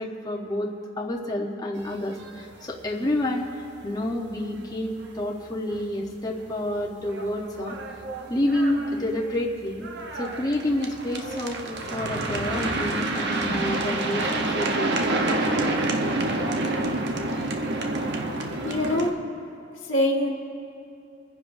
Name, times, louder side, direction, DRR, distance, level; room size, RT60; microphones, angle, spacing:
voice 1, 0.0-7.8 8.3-9.9 10.1-15.8 17.1-17.2, left 1 dB, 20° left, -1 dB, 1.0 m, -29 dB
sound 1, 1.9-2.6 2.9-3.0 3.3-3.4 3.8-3.9 5.7-5.8 6.4-6.5 6.9-19.1, right 2 dB, 60° right, 0.9 m, -28 dB
voice 2, 18.6-19.1 19.9-20.3, left 1 dB, 80° left, -1 dB, 1.6 m, -23 dB
27.5 x 10.5 x 2.6 m, 2.7 s
head